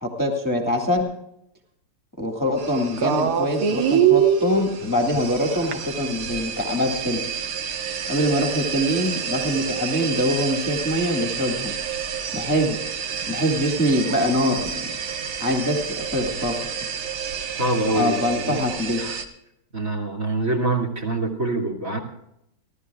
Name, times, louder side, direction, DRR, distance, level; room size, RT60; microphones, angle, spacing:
voice 1, 0.0-1.1 2.2-7.2 8.1-11.7 12.3-12.8 13.3-14.9 15.4-16.6 17.9-19.0, equal, 10° left, 1 dB, 1.7 m, -24 dB
sound 1, 2.6-19.2, right 7 dB, 80° right, 2.1 m, -27 dB
voice 2, 17.6-18.6 19.0-19.2 19.7-22.0, right 2 dB, 40° right, 3 dB, 2.7 m, -25 dB
30.0 x 12.5 x 2.3 m, 0.80 s
omnidirectional pair, 2.4 m